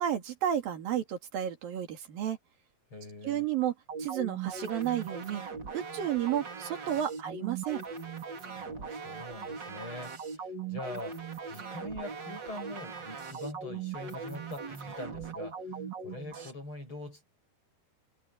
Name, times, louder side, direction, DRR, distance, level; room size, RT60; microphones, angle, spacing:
voice 1, 0.0-2.4 3.2-3.7 4.0-5.4 5.7-7.8, right 10 dB, 60° right, 4.1 m, -32 dB
voice 2, 2.9-3.5 8.6-11.2 11.5-15.8 16.0-17.2, left 2 dB, 30° left, 8.6 m, -43 dB
sound 1, 3.9-16.5, right 5 dB, 35° right, 2.1 m, -40 dB
omnidirectional pair, 4.7 m